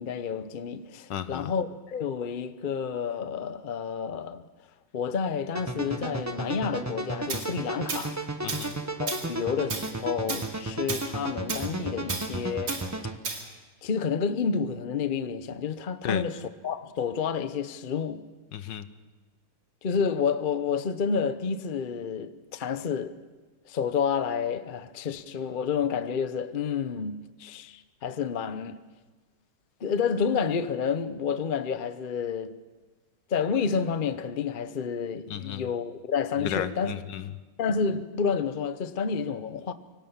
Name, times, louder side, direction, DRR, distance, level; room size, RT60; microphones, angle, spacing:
voice 1, 0.0-4.5 4.9-8.2 9.0-12.8 13.8-16.4 16.6-18.3 19.8-23.2 23.7-28.8 29.8-32.6 33.3-36.9 37.6-39.7, left 6 dB, 50° left, 0.6 m, -29 dB
voice 2, 1.1-1.5 8.4-8.8 16.0-16.2 18.5-18.9 35.3-35.7 36.4-37.3, left 9 dB, 70° left, 1.5 m, -33 dB
sound 1, 5.5-13.2, right 2 dB, 15° right, 0.6 m, -34 dB
Tools, 7.3-7.5 7.9-8.1 8.5-8.7 9.1-9.3 9.7-9.9 10.3-10.5 10.9-11.1 11.5-11.7 12.1-12.3 12.7-12.8 13.2-13.4, right 4 dB, 65° right, 3.1 m, -33 dB
24.5 x 17.5 x 7.1 m
omnidirectional pair, 2.1 m